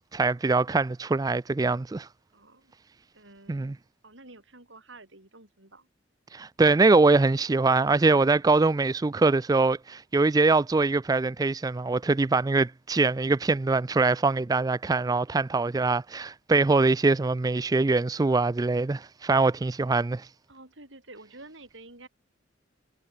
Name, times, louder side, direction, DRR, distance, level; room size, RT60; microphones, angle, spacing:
voice 1, 0.1-2.1 3.5-3.8 6.3-20.3, right 3 dB, 20° right, 0.3 m, -23 dB
voice 2, 2.3-2.7 3.1-3.8 4.0-5.9 20.5-22.1, right 2 dB, 75° right, 7.7 m, -49 dB
head